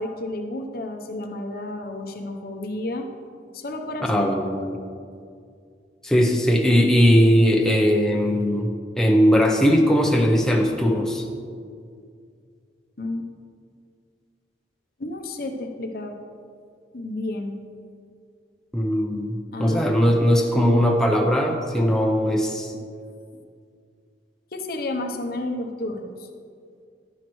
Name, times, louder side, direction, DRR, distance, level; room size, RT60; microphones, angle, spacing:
voice 1, 0.0-3.1 3.5-4.2 13.0-13.3 15.0-16.1 16.9-17.5 19.5-19.9 24.5-26.3, left 2 dB, 55° left, 4 dB, 0.8 m, -31 dB
voice 2, 4.0-4.8 6.0-8.7 9.0-11.2 18.7-22.7, equal, 5° left, 0 dB, 0.6 m, -19 dB
11.0 x 10.0 x 3.1 m, 2.3 s
head